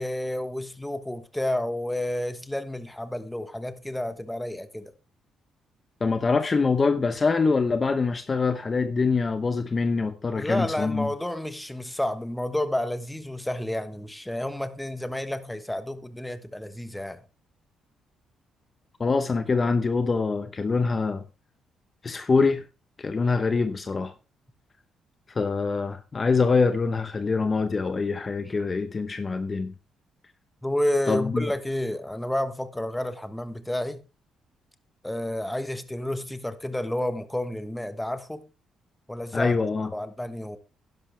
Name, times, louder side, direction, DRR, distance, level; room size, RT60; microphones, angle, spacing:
voice 1, 0.0-4.9 10.3-17.2 28.4-28.5 30.6-34.0 35.0-38.4 39.1-39.5 39.9-40.6, left 1 dB, 5° left, 1.3 m, -30 dB
voice 2, 6.0-11.1 19.0-21.2 22.0-22.6 23.0-24.1 25.3-29.7 31.1-31.5 39.3-39.9, left 4 dB, 35° left, 0.9 m, -24 dB
11.5 x 11.0 x 3.4 m
cardioid pair, 90°, 0 cm